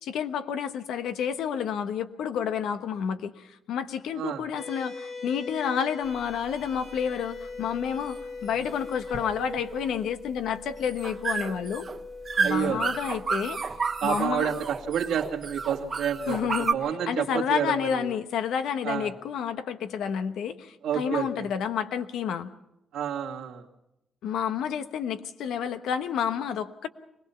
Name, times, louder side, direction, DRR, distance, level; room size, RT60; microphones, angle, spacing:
voice 1, 0.0-11.9 12.4-13.6 14.0-14.5 16.3-22.5 24.2-26.9, left 8 dB, 90° left, 10 dB, 1.1 m, -30 dB
sound 1, 4.5-17.2, left 4 dB, 70° left, 5.7 m, -42 dB
sound 2, 6.0-16.7, right 5 dB, 40° right, 1.1 m, -32 dB
voice 2, 12.4-12.8 14.0-16.4 16.7-18.1 18.8-19.1 20.8-21.5 22.9-23.6, right 8 dB, 90° right, 1 dB, 2.2 m, -29 dB
23.5 x 19.0 x 5.8 m, 0.87 s
cardioid pair, 115°, 0 cm